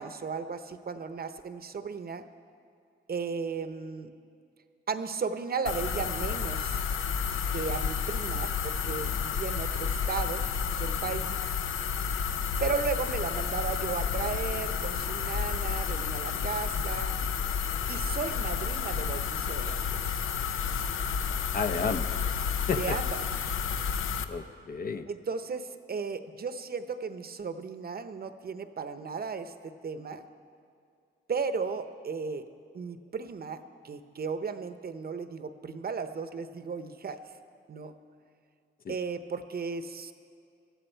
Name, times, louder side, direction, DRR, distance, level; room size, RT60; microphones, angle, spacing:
voice 1, 0.0-2.2 3.1-4.1 4.9-6.8 7.5-10.4 10.7-11.5 12.6-17.1 17.9-20.3 22.8-23.2 25.1-30.2 31.3-32.4 32.7-37.2 37.7-37.9 38.9-40.1, right 5 dB, 50° right, 10 dB, 0.8 m, -35 dB
sound 1, 5.7-24.2, left 7 dB, 85° left, 0.7 m, -31 dB
voice 2, 21.5-22.2 22.7-23.0 24.2-25.1 38.8-39.0, left 5 dB, 45° left, 7 dB, 0.7 m, -32 dB
18.5 x 13.0 x 4.5 m, 2.4 s
cardioid pair, 85°, 20 cm